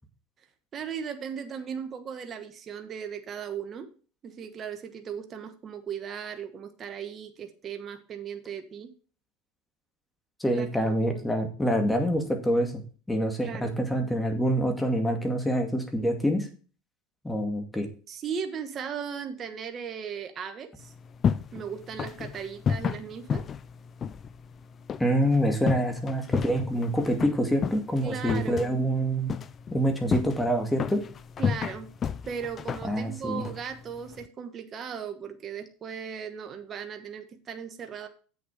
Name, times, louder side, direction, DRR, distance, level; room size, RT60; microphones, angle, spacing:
voice 1, 0.7-3.9 4.2-8.9 10.5-11.3 13.4-13.8 18.1-20.9 21.5-23.4 28.0-28.8 31.4-31.9 32.3-38.1, right 7 dB, 35° right, 7 dB, 1.3 m, -37 dB
voice 2, 10.4-12.8 13.1-16.5 17.2-17.9 25.0-29.3 29.7-31.0 32.8-33.4, equal, 5° left, 5 dB, 2.2 m, -26 dB
sound 1, 20.8-34.3, left 7 dB, 35° left, 0.5 m, -33 dB
8.3 x 7.0 x 4.8 m, 0.38 s
supercardioid pair, 110°, 0 cm